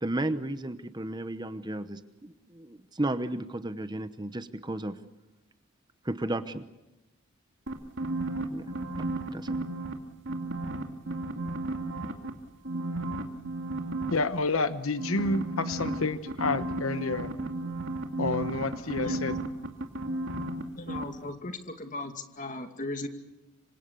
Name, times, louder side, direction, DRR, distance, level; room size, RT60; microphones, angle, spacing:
voice 1, 0.0-4.9 6.0-6.7 8.5-8.7 9.0-9.5, right 1 dB, 20° right, 12 dB, 0.9 m, -34 dB
sound 1, 7.7-9.9 10.3-12.3 12.6-14.1 15.0-20.6 20.9-21.0, right 2 dB, 55° right, 2.5 m, -33 dB
voice 2, 14.1-17.3 18.2-19.3, left 3 dB, 70° left, 12 dB, 1.1 m, -29 dB
voice 3, 18.8-19.2 20.8-23.1, left 2 dB, 35° left, 7 dB, 2.4 m, -37 dB
27.0 x 25.5 x 6.9 m, 1.0 s
head